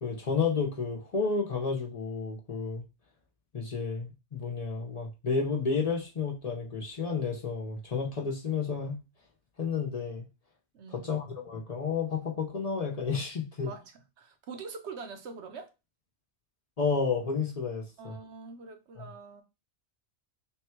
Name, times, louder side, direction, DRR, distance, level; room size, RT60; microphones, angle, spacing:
voice 1, 0.0-2.8 3.5-9.0 9.6-10.3 10.9-13.7 16.8-18.1 19.0-19.1, left 5 dB, 40° left, 0.7 m, -31 dB
voice 2, 10.7-11.1 13.6-15.7 18.0-19.4, right 5 dB, 80° right, 1.0 m, -44 dB
3.6 x 2.3 x 4.4 m
omnidirectional pair, 1.2 m